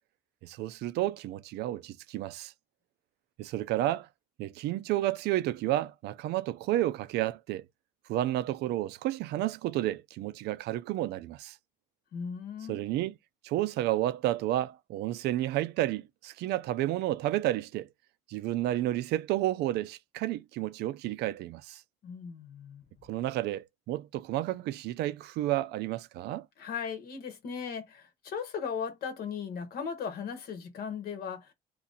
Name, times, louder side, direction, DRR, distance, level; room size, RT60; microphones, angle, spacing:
voice 1, 0.4-2.5 3.4-4.1 4.4-7.6 8.1-11.6 12.7-13.2 13.4-17.9 18.3-21.8 23.1-26.5, right 14 dB, 75° right, 0.4 m, -31 dB
voice 2, 12.1-12.8 22.0-22.8 26.6-31.5, left 6 dB, 65° left, 1.0 m, -37 dB
2.8 x 2.6 x 3.9 m
cardioid pair, 110°, 17 cm